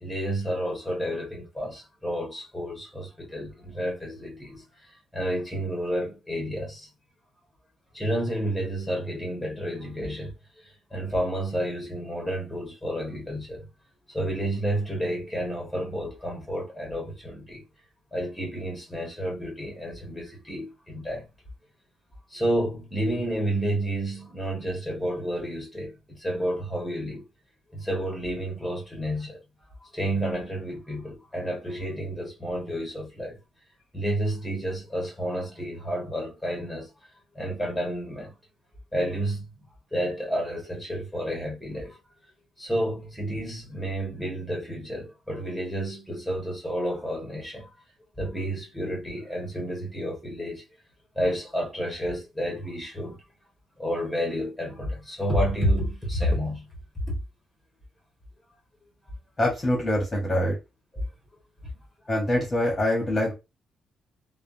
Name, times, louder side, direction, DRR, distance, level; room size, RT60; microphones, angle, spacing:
voice 1, 0.0-6.9 7.9-13.6 14.1-17.6 18.1-21.3 22.3-27.2 27.7-29.4 29.8-33.4 33.9-36.9 37.3-38.4 38.9-39.5 39.9-42.0 42.6-47.7 48.2-50.6 51.1-53.2 53.8-56.7 57.1-57.2 60.9-61.0, equal, ahead, 1.5 m, -30 dB
voice 2, 59.4-60.6 62.1-63.3, left 1 dB, 25° left, 1.1 m, -24 dB
3.2 x 2.0 x 2.6 m
cardioid pair, 90°, 0 cm